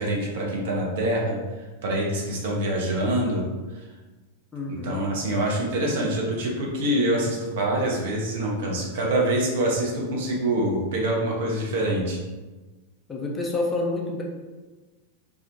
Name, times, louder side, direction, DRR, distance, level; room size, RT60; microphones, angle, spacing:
voice 1, 0.0-1.4 1.8-3.4 4.7-12.2, right 1 dB, 55° right, -2 dB, 0.6 m, -25 dB
voice 2, 4.5-5.0 13.1-14.2, left 2 dB, 15° left, -1 dB, 0.4 m, -28 dB
2.4 x 2.1 x 2.5 m, 1.2 s
figure-of-eight pair, 90°, 0 cm